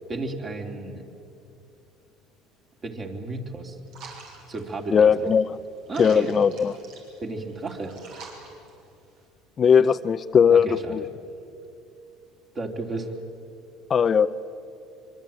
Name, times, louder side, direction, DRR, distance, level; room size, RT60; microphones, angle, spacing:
voice 1, 0.1-1.0 2.8-3.8 4.5-5.3 5.9-6.3 7.2-7.9 10.5-11.1 12.5-13.1, right 3 dB, 35° right, 2 dB, 3.5 m, -33 dB
sound 1, 3.9-9.3, right 4 dB, 75° right, 6.9 m, -47 dB
voice 2, 4.9-5.6 6.0-6.7 9.6-11.0 13.9-14.3, left 7 dB, 35° left, 11 dB, 0.6 m, -19 dB
25.0 x 23.5 x 9.1 m, 2.6 s
supercardioid pair, 105°, 0 cm